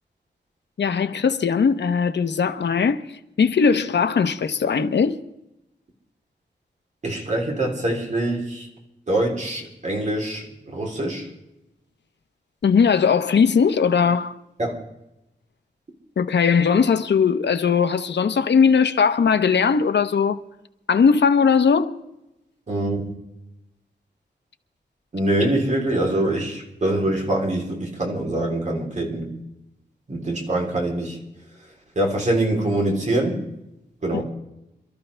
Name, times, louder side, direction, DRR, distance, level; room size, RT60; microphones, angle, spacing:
voice 1, 0.8-5.2 12.6-14.4 16.2-20.4 20.9-22.0 34.1-34.2, left 6 dB, 70° left, 0.9 m, -19 dB
voice 2, 7.0-8.7 9.1-11.3 14.6-14.8 22.7-23.1 25.1-29.3 30.1-31.2 32.0-33.4 34.0-34.2, right 1 dB, 40° right, 3.5 m, -24 dB
27.5 x 13.0 x 3.4 m
wide cardioid pair, 155°, 19 cm